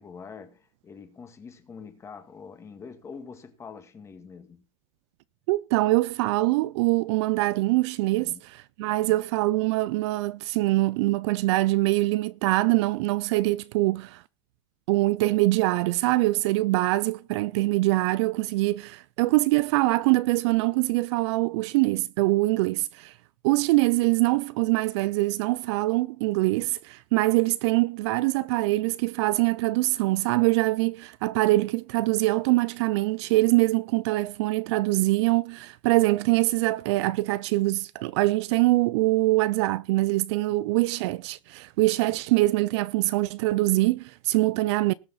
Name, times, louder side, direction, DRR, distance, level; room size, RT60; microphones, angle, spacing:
voice 1, 0.0-4.6 8.2-8.4 8.9-9.2 40.5-40.6 42.1-42.2, left 5 dB, 15° left, 1.7 m, -45 dB
voice 2, 5.5-14.2 14.9-23.1 23.4-44.9, right 20 dB, 55° right, 0.5 m, -24 dB
19.5 x 6.8 x 4.0 m
supercardioid pair, 155°, 17 cm